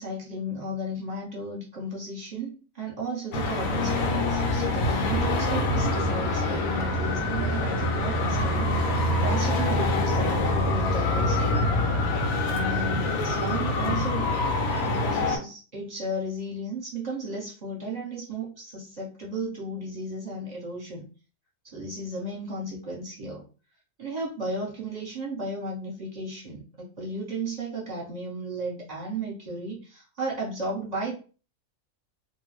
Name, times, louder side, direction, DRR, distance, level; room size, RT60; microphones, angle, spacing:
voice 1, 0.0-11.6 12.5-14.3 14.9-21.1 21.6-23.4 24.0-31.1, right 1 dB, 30° right, -4 dB, 1.1 m, -34 dB
Traffic noise roadway noise, 3.3-15.4, left 2 dB, 70° left, 1.0 m, -25 dB
2.6 x 2.2 x 3.2 m, 0.36 s
omnidirectional pair, 1.6 m